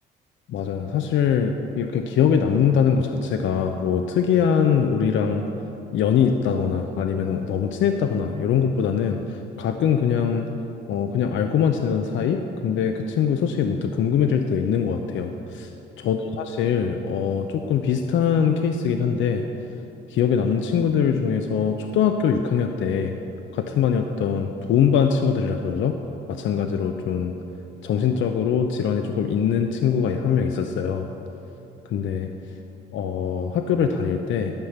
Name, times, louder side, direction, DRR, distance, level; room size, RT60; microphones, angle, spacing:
voice 1, 0.5-5.5 5.9-10.5 10.9-15.7 16.0-19.4 20.1-23.1 23.5-26.0 26.3-27.3 27.8-31.1 31.8-32.3 32.9-34.5, left 7 dB, 75° left, 5 dB, 0.6 m, -22 dB
12.5 x 5.7 x 8.0 m, 2.9 s
cardioid pair, 90°, 20 cm